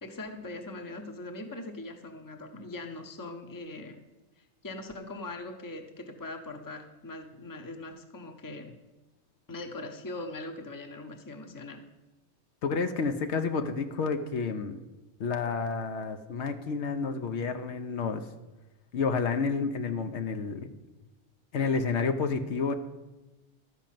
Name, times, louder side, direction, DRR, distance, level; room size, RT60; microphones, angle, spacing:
voice 1, 0.0-4.0 4.4-8.8 9.5-11.8, left 2 dB, 20° left, 6 dB, 0.8 m, -41 dB
voice 2, 12.6-14.8 15.2-18.2 18.9-20.7 21.5-22.7, left 5 dB, 75° left, 7 dB, 1.1 m, -30 dB
11.5 x 5.2 x 7.5 m, 1.1 s
omnidirectional pair, 1.2 m